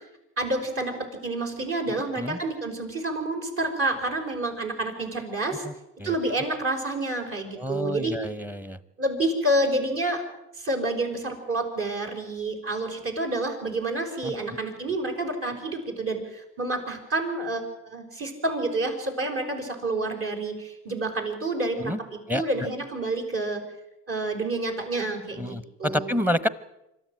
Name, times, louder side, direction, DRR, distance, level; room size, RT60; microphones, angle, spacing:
voice 1, 0.4-0.9 1.2-5.7 6.0-8.1 9.0-10.2 10.6-23.6 24.1-26.2, right 2 dB, 50° right, 3 dB, 5.6 m, -29 dB
voice 2, 1.9-2.4 5.6-5.7 6.0-6.1 7.6-8.8 14.2-14.5 21.8-22.0 22.3-22.4 25.4-26.5, equal, 5° right, 16 dB, 0.9 m, -29 dB
25.5 x 13.5 x 9.4 m, 0.94 s
cardioid pair, 125°, 29 cm